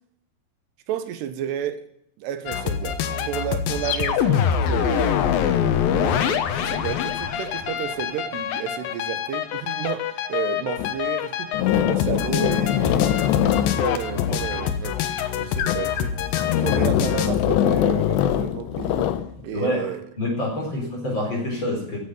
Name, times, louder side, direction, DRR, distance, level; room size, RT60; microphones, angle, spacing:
voice 1, 0.9-1.9 2.2-5.3 5.9-15.0 15.3-16.2 16.6-19.1 19.4-20.0 20.7-20.9, right 9 dB, 80° right, 3.2 m, -32 dB
sound 1, 2.5-17.3, left 8 dB, 70° left, 2.5 m, -25 dB
sound 2, 10.8-10.9 11.5-14.8 15.4-15.9 16.3-19.3, left 11 dB, 85° left, 3.1 m, -23 dB
voice 2, 19.5-19.9 20.2-22.0, left 1 dB, 30° left, 4.5 m, -26 dB
15.5 x 8.1 x 9.0 m
omnidirectional pair, 4.9 m